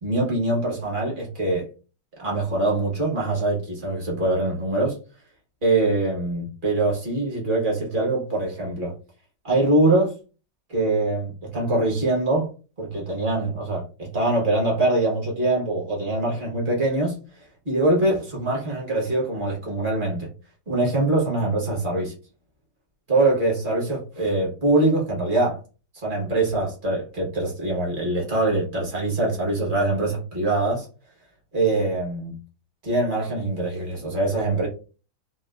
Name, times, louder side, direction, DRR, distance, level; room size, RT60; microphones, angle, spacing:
voice 1, 0.0-1.7 2.2-5.0 5.6-8.9 9.4-10.1 10.7-12.5 12.8-17.2 17.6-20.3 20.7-22.1 23.1-25.6 25.9-30.9 31.5-32.4 32.8-34.7, right 2 dB, 40° right, 0.7 m, -23 dB
3.7 x 2.4 x 2.3 m
omnidirectional pair, 2.3 m